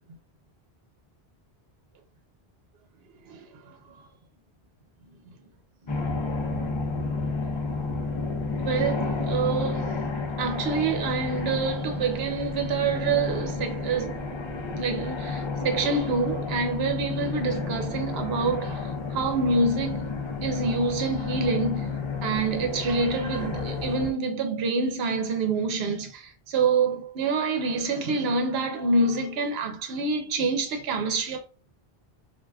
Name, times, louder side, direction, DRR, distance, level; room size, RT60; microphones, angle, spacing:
voice 1, 3.3-3.6 3.9-4.1 5.9-6.0 8.6-10.1 10.4-14.4 14.8-20.1 20.4-21.9 22.2-31.4, right 4 dB, 70° right, 0.9 m, -27 dB
sound 1, 5.9-24.1, left 4 dB, 35° left, 0.6 m, -31 dB
4.7 x 2.5 x 2.2 m
omnidirectional pair, 1.1 m